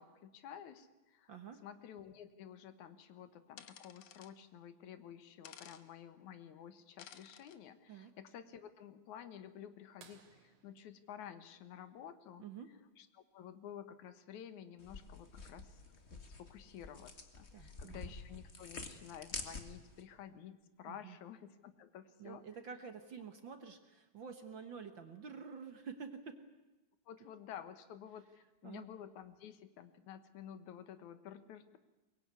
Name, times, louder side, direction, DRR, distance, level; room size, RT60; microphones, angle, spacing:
voice 1, 0.0-1.3 1.6-12.5 13.0-15.8 16.1-22.4 27.1-31.8, left 9 dB, 80° left, 11 dB, 2.7 m, -52 dB
voice 2, 1.3-1.6 7.9-8.1 12.4-12.7 17.5-18.1 20.9-21.1 22.2-26.4 28.6-28.9, right 6 dB, 50° right, 8 dB, 1.7 m, -49 dB
sound 1, 3.6-4.3 5.4-5.8 7.0-7.6, left 9 dB, 60° left, 2.1 m, -55 dB
sound 2, 10.0-12.5 14.4-14.5 16.7-16.8 18.5-18.8 19.6-19.7, right 6 dB, 85° right, 3.4 m, -64 dB
sound 3, 14.8-20.0, left 3 dB, 25° left, 1.7 m, -48 dB
23.5 x 21.5 x 9.6 m, 1.0 s
omnidirectional pair, 3.3 m